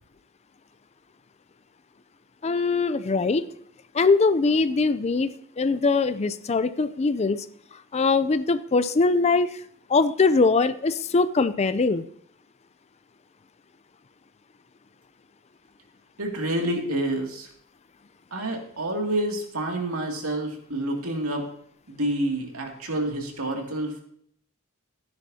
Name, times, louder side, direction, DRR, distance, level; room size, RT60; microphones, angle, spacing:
voice 1, 2.4-3.5 3.9-7.5 7.9-9.6 9.9-12.0, left 4 dB, 30° left, 13 dB, 0.4 m, -22 dB
voice 2, 16.2-17.5 18.3-21.4 21.9-24.0, right 1 dB, 80° right, 1 dB, 2.4 m, -28 dB
15.0 x 9.7 x 2.8 m, 0.67 s
head